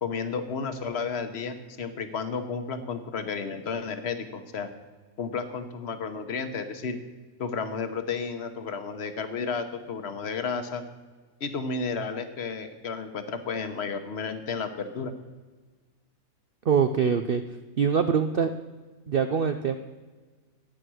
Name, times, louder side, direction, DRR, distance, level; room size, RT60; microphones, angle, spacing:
voice 1, 0.0-4.7 5.2-7.0 7.4-10.8 11.4-15.1, left 5 dB, 50° left, 9 dB, 1.2 m, -32 dB
voice 2, 16.7-17.4 17.8-18.5 19.1-19.8, right 7 dB, 60° right, 8 dB, 0.6 m, -23 dB
13.5 x 9.1 x 6.3 m, 1.4 s
omnidirectional pair, 1.6 m